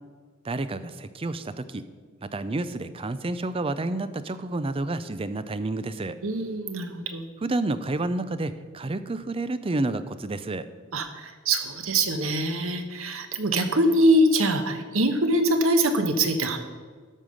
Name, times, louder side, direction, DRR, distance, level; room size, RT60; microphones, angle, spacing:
voice 1, 0.4-1.8 2.2-6.2 7.4-10.7, right 2 dB, 25° right, 12 dB, 0.5 m, -30 dB
voice 2, 6.2-7.2 10.9-16.6, right 1 dB, 90° right, 7 dB, 1.2 m, -23 dB
12.5 x 5.5 x 6.5 m, 1.5 s
head